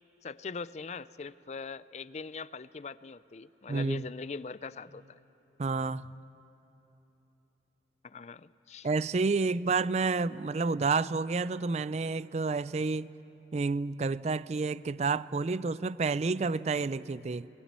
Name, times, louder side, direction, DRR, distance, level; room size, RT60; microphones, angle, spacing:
voice 1, 0.2-5.2 8.0-8.9, left 4 dB, 40° left, 0.4 m, -41 dB
voice 2, 3.7-4.0 5.6-6.1 8.8-13.1 13.5-17.5, right 4 dB, 40° right, 0.4 m, -29 dB
21.5 x 20.5 x 7.5 m
head